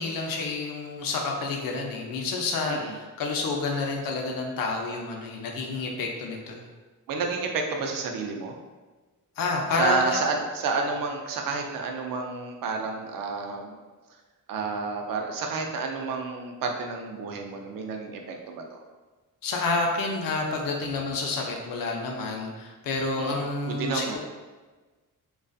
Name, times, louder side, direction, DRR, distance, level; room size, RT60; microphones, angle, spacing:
voice 1, 0.0-6.7 9.4-10.3 19.4-24.2, left 3 dB, 85° left, 0 dB, 0.5 m, -29 dB
voice 2, 7.1-8.6 9.7-13.7 14.5-18.8 23.2-24.2, right 4 dB, 85° right, 3 dB, 0.5 m, -30 dB
2.5 x 2.3 x 2.3 m, 1.3 s
cardioid pair, 115°, 33 cm